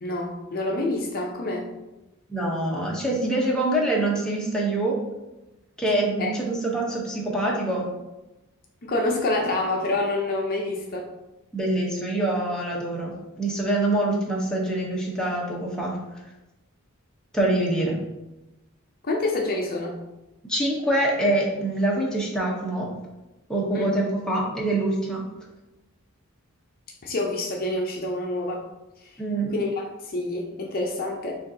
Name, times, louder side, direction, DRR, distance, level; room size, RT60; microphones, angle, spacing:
voice 1, 0.0-1.7 6.2-6.3 8.8-11.1 19.0-19.9 23.7-23.9 27.0-28.6 29.0-29.1 29.5-31.3, left 2 dB, 45° left, -1 dB, 0.6 m, -27 dB
voice 2, 2.3-5.0 5.8-7.9 11.5-13.1 13.4-16.0 17.3-18.0 20.5-22.9 23.5-25.2 29.2-29.5, right 1 dB, 5° left, -4 dB, 0.8 m, -25 dB
6.5 x 2.5 x 2.7 m, 1.0 s
head